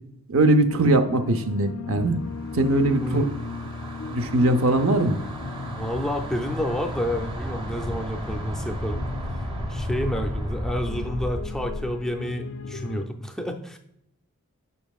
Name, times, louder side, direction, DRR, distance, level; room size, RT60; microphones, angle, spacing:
voice 1, 0.3-2.2 2.5-3.2 4.1-5.2, right 1 dB, 70° right, 8 dB, 0.6 m, -20 dB
sound 1, 0.7-13.1, left 3 dB, 75° left, 0.5 m, -38 dB
sound 2, 2.2-12.0, equal, 20° right, 0.8 m, -34 dB
voice 2, 3.0-3.3 5.7-9.0 9.7-13.8, left 1 dB, 5° left, 4 dB, 0.4 m, -29 dB
6.9 x 5.8 x 2.3 m, 0.77 s
head